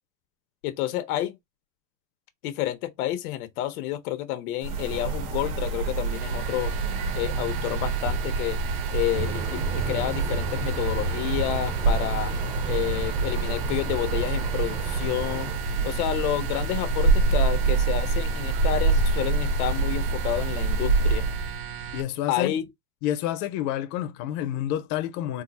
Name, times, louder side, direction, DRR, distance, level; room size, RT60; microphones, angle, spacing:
voice 1, 0.6-1.4 2.4-6.7 7.1-8.6 8.9-12.3 12.7-15.5 15.8-21.3 22.3-22.6, left 13 dB, 85° left, 1.0 m, -29 dB
sound 1, 4.6-21.6, right 3 dB, 70° right, 1.5 m, -26 dB
sound 2, 6.0-22.0, right 9 dB, 55° right, 1.2 m, -37 dB
sound 3, 9.1-15.6, right 5 dB, 15° right, 0.5 m, -36 dB
voice 2, 21.9-22.6 23.0-25.4, left 12 dB, 45° left, 0.6 m, -29 dB
3.6 x 2.0 x 4.0 m
supercardioid pair, 160°, 43 cm